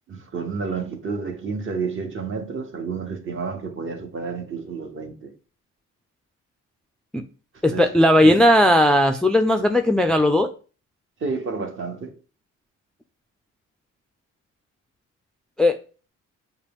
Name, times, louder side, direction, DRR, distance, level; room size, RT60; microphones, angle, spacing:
voice 1, 0.1-5.3 7.7-7.9 8.2-8.4 11.2-12.1, right 4 dB, 40° right, 1.0 m, -30 dB
voice 2, 7.6-10.5 15.6-15.8, left 1 dB, 5° left, 0.3 m, -17 dB
6.4 x 2.4 x 3.5 m
cardioid pair, 90°, 30 cm